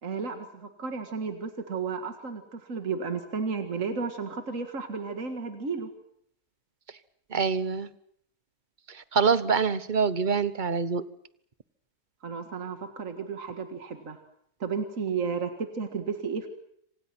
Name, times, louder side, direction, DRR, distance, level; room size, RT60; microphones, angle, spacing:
voice 1, 0.0-5.9 12.2-14.2 14.6-16.5, right 5 dB, 60° right, 7 dB, 2.3 m, -33 dB
voice 2, 7.3-7.9 8.9-11.0, right 5 dB, 35° right, 15 dB, 1.1 m, -25 dB
27.5 x 26.5 x 6.1 m, 0.71 s
omnidirectional pair, 1.6 m